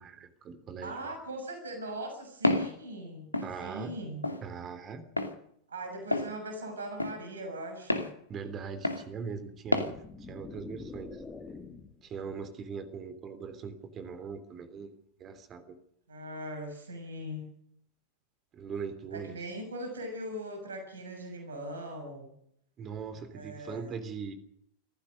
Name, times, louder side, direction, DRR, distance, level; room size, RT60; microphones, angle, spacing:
voice 1, 0.0-1.1 3.4-3.9 4.4-5.0 8.3-11.2 12.0-14.9 15.2-15.8 18.5-19.3 22.8-24.3, right 6 dB, 30° right, 11 dB, 3.3 m, -40 dB
voice 2, 0.8-3.3 3.6-4.2 5.7-8.1 16.1-17.4 19.1-22.3 23.3-23.9, right 1 dB, 70° right, 6 dB, 6.5 m, -40 dB
Walk footsteps, 2.4-2.7 3.3-3.5 4.2-4.4 5.2-5.3 6.1-6.3 7.0-7.2 7.9-8.1 8.8-9.0 9.7-9.9, left 2 dB, 85° left, 2.4 m, -28 dB
sound 1, 9.6-12.1, left 4 dB, 15° left, 3.0 m, -46 dB
26.5 x 15.5 x 6.6 m, 0.69 s
figure-of-eight pair, 90°, 0 cm